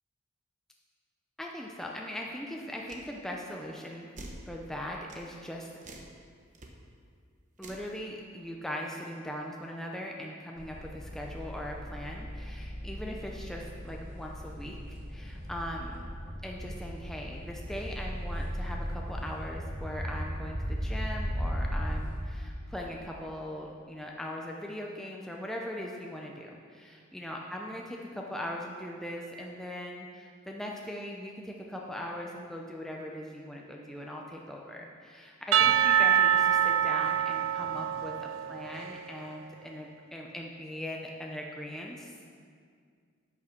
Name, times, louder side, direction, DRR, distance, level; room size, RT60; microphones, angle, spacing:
voice 1, 1.4-4.1 4.5-5.7 7.6-16.0 16.4-42.3, equal, ahead, -1 dB, 0.6 m, -40 dB
sound 1, 2.9-3.1 4.2-4.4 5.1-5.3 5.8-6.1 6.5-6.7 7.6-7.9, right 2 dB, 40° right, 0.9 m, -45 dB
sound 2, 10.6-22.3, equal, 55° right, 2.0 m, -37 dB
Percussion / Church bell, 35.5-39.2, right 9 dB, 75° right, 0.4 m, -25 dB
10.0 x 6.3 x 5.9 m, 2.1 s
head